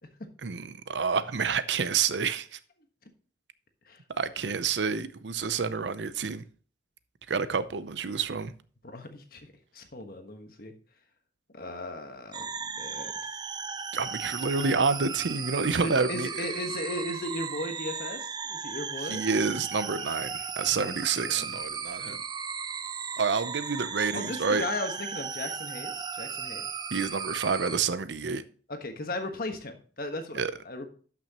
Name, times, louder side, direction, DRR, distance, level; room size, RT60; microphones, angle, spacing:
voice 1, 0.4-2.6 4.2-6.4 7.3-8.5 13.9-16.3 19.1-22.2 23.2-24.6 26.9-28.4 30.3-30.5, right 5 dB, 90° right, 0.7 m, -28 dB
voice 2, 8.8-10.7 11.5-12.5 12.7-13.1 15.8-19.2 21.3-21.6 24.1-26.7 28.7-30.9, left 1 dB, 55° left, 1.3 m, -36 dB
sound 1, 12.3-27.8, right 6 dB, 25° right, 0.5 m, -36 dB
12.0 x 6.1 x 3.0 m
head